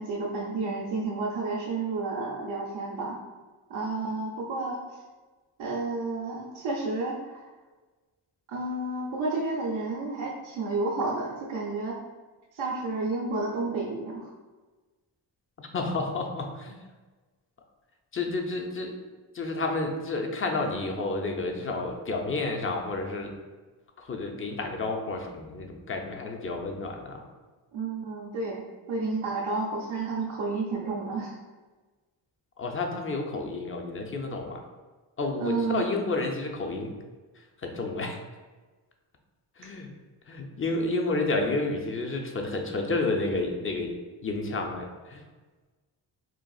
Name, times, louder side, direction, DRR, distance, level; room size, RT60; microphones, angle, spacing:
voice 1, 0.0-3.2 3.7-5.0 5.6-7.5 8.5-12.0 12.5-14.3 27.7-28.6 28.9-31.4 35.4-35.9, right 3 dB, 80° right, -5 dB, 0.7 m, -31 dB
voice 2, 15.6-16.9 18.1-19.0 19.3-23.3 24.0-27.3 32.6-34.6 35.2-36.9 37.4-38.2 39.6-39.9 40.3-44.0 44.2-45.2, left 3 dB, 25° left, 2 dB, 0.6 m, -30 dB
4.0 x 2.4 x 2.3 m, 1.3 s
supercardioid pair, 45°, 50 cm